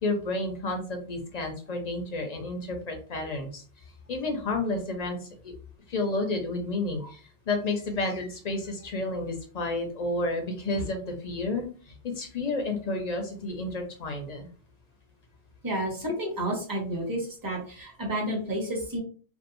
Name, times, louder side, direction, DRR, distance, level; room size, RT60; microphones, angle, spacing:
voice 1, 0.0-3.6 4.1-5.5 5.9-14.5, left 2 dB, 50° left, 4 dB, 0.5 m, -31 dB
voice 2, 15.6-19.0, right 1 dB, 20° right, -2 dB, 0.8 m, -31 dB
2.7 x 2.1 x 2.5 m, 0.42 s
omnidirectional pair, 1.1 m